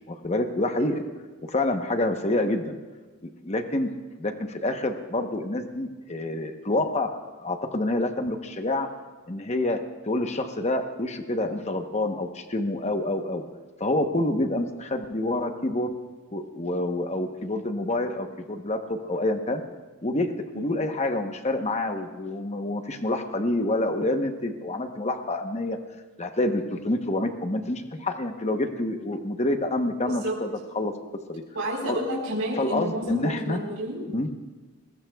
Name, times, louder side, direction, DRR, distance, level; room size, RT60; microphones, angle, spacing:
voice 1, 0.1-1.0 1.4-2.7 3.2-3.9 4.2-8.9 9.3-9.8 10.0-13.4 13.8-15.9 16.3-19.6 20.0-20.3 20.5-25.8 26.2-30.5 30.7-30.9 31.3-31.4 31.9-32.0 32.6-33.6 34.1-34.3, left 1 dB, 30° left, 6 dB, 1.0 m, -27 dB
voice 2, 30.0-30.3 31.5-34.1, equal, 85° right, -4 dB, 3.9 m, -30 dB
24.0 x 20.5 x 2.3 m, 1.3 s
head